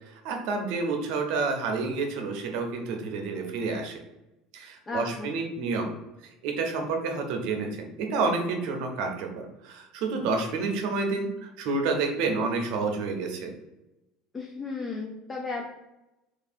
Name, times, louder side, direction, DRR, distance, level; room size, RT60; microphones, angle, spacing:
voice 1, 0.1-4.0 4.5-5.9 6.4-13.5, right 4 dB, 65° right, 3 dB, 0.7 m, -29 dB
voice 2, 4.9-5.3 14.3-15.6, left 3 dB, 20° left, 0 dB, 0.5 m, -34 dB
3.1 x 2.7 x 4.1 m, 0.97 s
cardioid pair, 145°, 0 cm